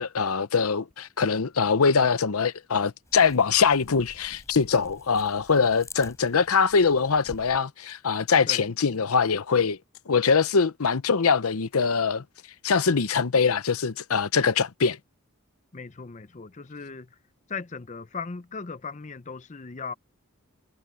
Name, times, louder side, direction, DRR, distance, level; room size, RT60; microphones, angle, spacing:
voice 1, 0.0-9.8 10.1-12.2 12.6-15.0, left 5 dB, 85° left, 0.8 m, -23 dB
sound 1, 3.0-7.6, left 2 dB, 15° left, 6.3 m, -49 dB
voice 2, 15.7-17.1 17.5-19.9, left 5 dB, 35° left, 0.6 m, -37 dB
head